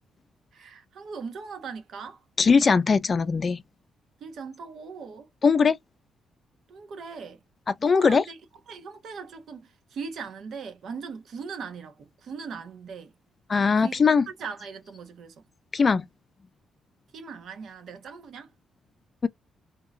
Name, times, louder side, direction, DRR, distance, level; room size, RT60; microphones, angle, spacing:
voice 1, 0.5-2.2 4.2-5.3 6.7-7.4 7.8-8.4 8.7-13.1 13.8-14.0 14.4-15.4 17.1-18.5, right 5 dB, 65° right, 1.2 m, -39 dB
voice 2, 2.4-3.6 5.4-5.8 7.7-8.2 13.5-14.3 15.7-16.1 19.2-19.3, left 5 dB, 35° left, 0.4 m, -20 dB
3.8 x 2.8 x 2.5 m
cardioid pair, 105°, 0 cm